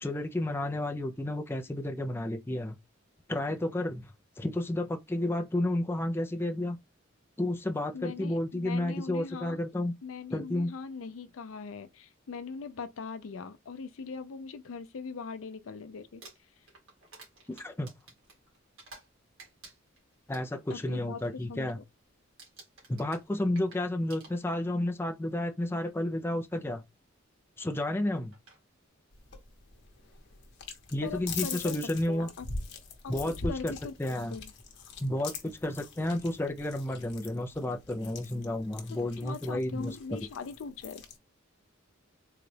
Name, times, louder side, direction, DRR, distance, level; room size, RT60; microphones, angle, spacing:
voice 1, 0.0-2.8 3.3-6.8 7.4-9.9 10.3-10.7 17.5-17.9 20.3-21.8 22.9-26.8 27.6-28.3 30.9-32.3 33.1-33.7 34.0-34.4 35.0-40.2, left 1 dB, 10° left, 0.4 m, -31 dB
voice 2, 7.9-9.6 10.0-16.2 20.7-21.2 21.5-21.8 31.0-31.8 32.1-32.5 33.0-33.1 33.5-33.9 34.3-34.5 39.0-41.0, left 5 dB, 75° left, 0.4 m, -41 dB
Crumpling crinkling, 16.0-19.1 19.4-20.8 21.2-21.5 21.8-22.1 22.4-24.8 25.7-25.8 27.8-27.9 28.3-28.6, right 3 dB, 80° right, 1.8 m, -53 dB
sound 1, 29.1-41.2, left 4 dB, 60° left, 0.9 m, -43 dB
3.9 x 2.3 x 3.2 m
head